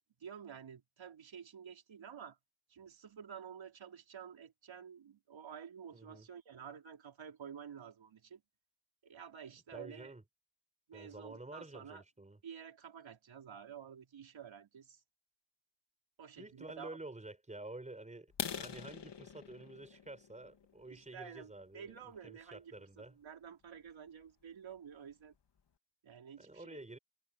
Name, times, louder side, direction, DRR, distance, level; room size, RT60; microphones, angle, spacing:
voice 1, 0.2-2.4 2.7-8.4 9.0-10.1 10.9-12.0 12.4-15.0 16.2-17.0 20.9-25.3 26.0-26.8, right 7 dB, 80° right, 4.7 m, -51 dB
voice 2, 5.9-6.3 9.7-10.2 10.9-12.4 16.4-23.2 26.4-27.0, right 2 dB, 15° right, 4.7 m, -50 dB
sound 1, 18.3-22.0 22.6-22.8 23.2-23.3 23.7-23.9 24.2-24.3 24.8-24.9 25.1-25.6, left 7 dB, 65° left, 3.2 m, -45 dB
wide cardioid pair, 170°, 45 cm